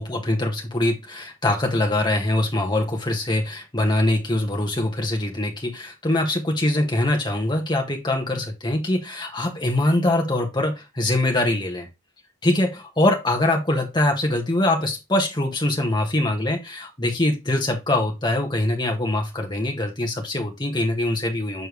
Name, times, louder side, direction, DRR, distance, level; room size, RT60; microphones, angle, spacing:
voice 1, 0.0-11.9 12.4-21.7, left 1 dB, 20° left, 2 dB, 1.4 m, -23 dB
6.8 x 4.4 x 3.2 m, 0.23 s
head